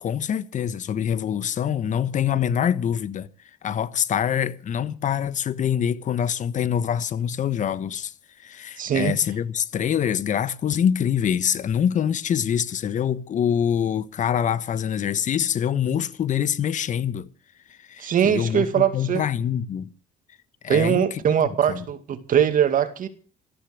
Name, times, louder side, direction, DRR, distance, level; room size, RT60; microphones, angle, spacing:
voice 1, 0.0-3.3 3.6-8.1 8.4-17.3 17.7-19.9 20.6-21.8, left 8 dB, 50° left, 1.2 m, -25 dB
voice 2, 8.8-9.1 18.0-19.2 20.7-23.1, right 8 dB, 55° right, 2.3 m, -21 dB
14.0 x 13.5 x 6.6 m
cardioid pair, 110°, 17 cm